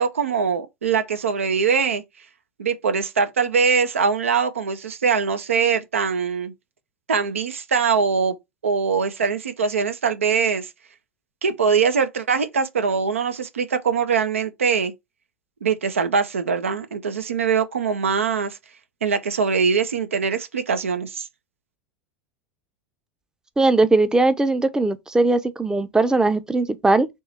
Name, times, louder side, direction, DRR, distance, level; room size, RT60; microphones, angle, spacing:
voice 1, 0.0-2.0 2.6-6.5 7.1-8.3 8.6-10.7 11.4-14.9 15.6-18.6 19.0-21.3, right 5 dB, 85° right, 0.7 m, -22 dB
voice 2, 23.6-27.1, right 2 dB, 10° right, 0.6 m, -19 dB
3.6 x 3.0 x 4.1 m
hypercardioid pair, 85°, 7 cm